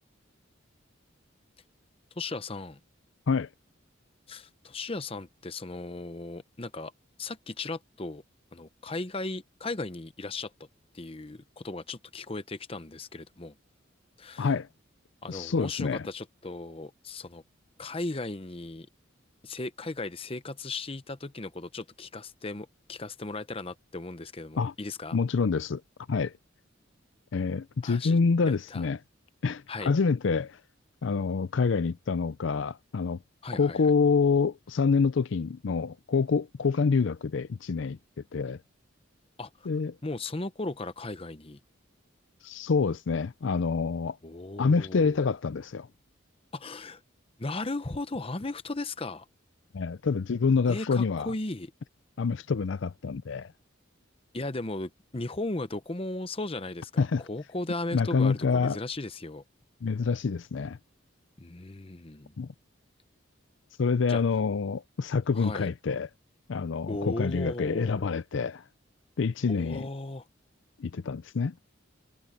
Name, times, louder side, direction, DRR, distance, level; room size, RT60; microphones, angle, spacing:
voice 1, 2.2-2.8 4.3-6.9 7.2-8.2 8.5-10.5 10.9-13.5 14.2-14.5 15.2-17.4 17.8-18.9 19.4-25.2 27.8-28.2 28.4-28.9 29.7-29.9 33.4-33.8 39.4-39.7 40.0-41.6 44.2-45.3 46.5-47.0 47.4-49.3 50.7-51.7 54.3-59.4 61.4-62.3 64.1-64.2 65.3-65.7 66.9-68.0 69.5-70.2, left 2 dB, 30° left, 0.8 m, -36 dB
voice 2, 14.4-14.7 15.3-16.1 24.6-24.7 25.1-25.8 26.1-26.3 27.3-29.0 29.4-30.6 31.0-33.2 33.5-38.0 38.3-38.6 39.7-40.0 42.4-44.2 44.6-45.9 49.7-51.3 52.2-53.5 57.0-57.2 57.9-58.8 59.8-60.8 62.4-62.5 63.8-66.1 66.5-68.6 69.2-69.9 70.8-71.5, left 5 dB, 70° left, 0.5 m, -27 dB
head